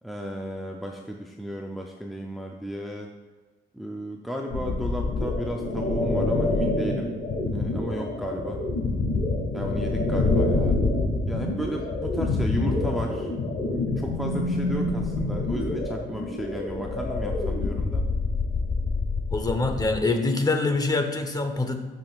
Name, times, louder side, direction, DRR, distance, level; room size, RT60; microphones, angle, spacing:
voice 1, 0.0-3.1 3.7-7.1 7.5-8.6 9.5-10.8 11.3-13.3 13.6-18.1, equal, ahead, 1 dB, 0.5 m, -34 dB
sound 1, 4.5-20.0, left 2 dB, 65° left, 2.3 m, -26 dB
voice 2, 19.3-21.8, left 3 dB, 20° left, 6 dB, 0.9 m, -25 dB
12.5 x 5.3 x 2.4 m, 1.3 s
cardioid pair, 105°, 19 cm